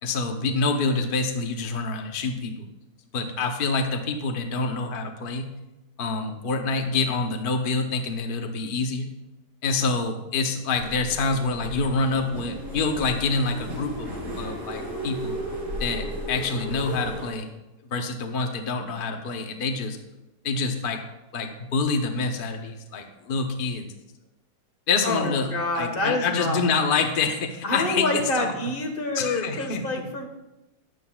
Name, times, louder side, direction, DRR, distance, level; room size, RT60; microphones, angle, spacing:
voice 1, 0.0-2.6 3.1-5.5 6.0-9.1 9.6-14.1 14.4-15.4 15.8-17.5 17.9-20.0 20.4-21.0 21.3-23.9 24.9-28.5 29.1-30.1, left 4 dB, 50° left, 4 dB, 0.6 m, -26 dB
sound 1, 10.7-17.3, equal, 40° right, 3.5 m, -35 dB
voice 2, 25.0-26.6 27.6-30.3, left 2 dB, 30° left, 3 dB, 1.4 m, -27 dB
14.5 x 11.0 x 2.3 m, 0.98 s
omnidirectional pair, 2.2 m